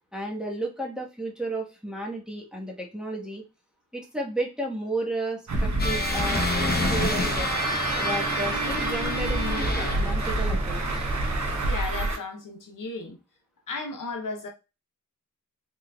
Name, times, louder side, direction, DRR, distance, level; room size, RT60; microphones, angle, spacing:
voice 1, 0.1-3.4 3.9-7.5 8.0-11.1, right 2 dB, ahead, 1.2 m, -33 dB
Truck, 5.5-12.2, right 2 dB, 60° right, 1.0 m, -28 dB
sound 1, 5.8-10.3, left 2 dB, 30° left, 0.8 m, -29 dB
sound 2, 6.5-11.7, right 2 dB, 20° right, 0.5 m, -37 dB
voice 2, 11.6-13.2 13.7-14.5, left 3 dB, 80° left, 0.8 m, -34 dB
3.8 x 3.5 x 2.3 m
wide cardioid pair, 60°, 32 cm